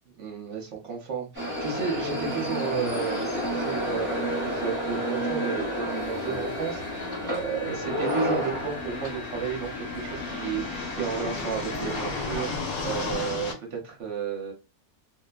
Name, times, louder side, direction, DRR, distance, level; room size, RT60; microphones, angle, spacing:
voice 1, 0.2-14.5, right 6 dB, 55° right, 1 dB, 0.9 m, -33 dB
sound 1, 1.3-12.6, equal, 15° left, 0.8 m, -31 dB
sound 2, 6.3-13.5, left 4 dB, 65° left, 1.1 m, -35 dB
2.8 x 2.1 x 2.2 m, 0.31 s
omnidirectional pair, 1.8 m